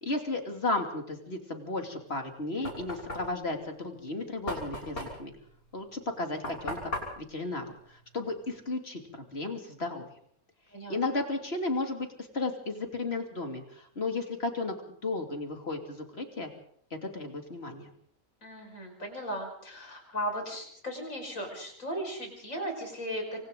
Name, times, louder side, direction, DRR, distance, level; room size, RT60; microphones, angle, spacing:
voice 1, 0.0-5.3 5.7-10.0 10.9-12.1 12.3-16.5 17.0-17.9, left 2 dB, 45° left, 4 dB, 2.8 m, -34 dB
Knock, 2.1-8.6, left 1 dB, 85° left, 6.7 m, -40 dB
voice 2, 18.4-23.4, equal, 65° left, 2 dB, 6.0 m, -36 dB
27.0 x 24.5 x 3.9 m, 0.62 s
omnidirectional pair, 1.5 m